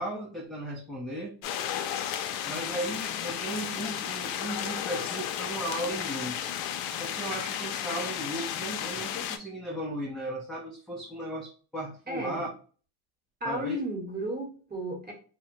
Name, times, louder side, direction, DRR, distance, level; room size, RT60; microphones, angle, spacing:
voice 1, 0.0-1.4 2.5-6.4 6.9-12.5 13.4-13.8, right 1 dB, ahead, -3 dB, 0.3 m, -36 dB
sound 1, 1.4-9.4, left 10 dB, 85° left, 0.5 m, -33 dB
voice 2, 12.1-12.5 13.4-15.1, right 1 dB, 20° right, 0 dB, 1.0 m, -33 dB
2.8 x 2.1 x 2.6 m, 0.40 s
cardioid pair, 120°, 46 cm